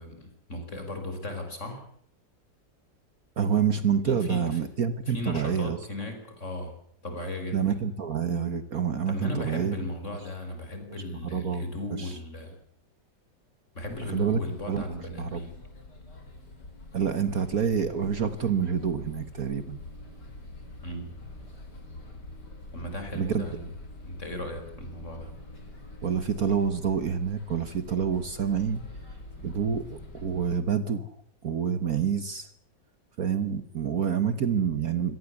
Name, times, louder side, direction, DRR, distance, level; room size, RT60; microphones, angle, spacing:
voice 1, 0.0-1.8 4.0-4.6 5.1-6.7 7.0-7.8 9.1-12.6 13.7-15.5 20.8-21.1 22.7-23.6 24.0-25.4, left 1 dB, 40° left, 6 dB, 5.5 m, -36 dB
voice 2, 3.4-5.8 7.5-9.8 11.2-11.6 12.0-12.1 14.0-14.4 14.7-14.9 15.2-15.4 16.9-19.8 23.1-23.4 26.0-28.8 29.0-29.2 29.4-31.1 31.4-32.5 33.2-35.2, right 7 dB, 55° right, 12 dB, 1.5 m, -27 dB
sound 1, 13.8-30.6, left 2 dB, 65° left, 4.8 m, -45 dB
24.5 x 18.0 x 8.4 m, 0.64 s
omnidirectional pair, 2.0 m